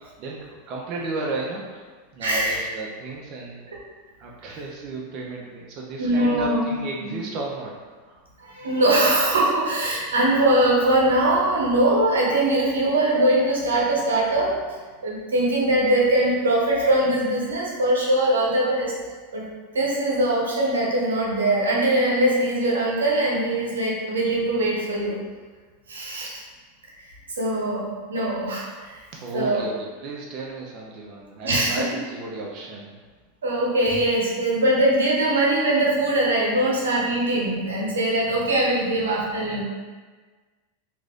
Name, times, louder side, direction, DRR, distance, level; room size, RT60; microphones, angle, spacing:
voice 1, 0.0-3.7 4.2-7.7 8.1-8.2 29.1-32.9, right 3 dB, 45° right, -3 dB, 0.5 m, -33 dB
voice 2, 2.2-2.6 6.0-6.7 7.0-7.2 8.4-14.6 15.0-18.9 19.3-19.4 19.7-25.2 25.9-26.4 27.4-29.0 29.3-29.6 31.4-31.9 33.4-39.6, right 1 dB, 90° right, -4 dB, 0.7 m, -22 dB
3.2 x 2.5 x 2.4 m, 1.4 s
hypercardioid pair, 100°, 0 cm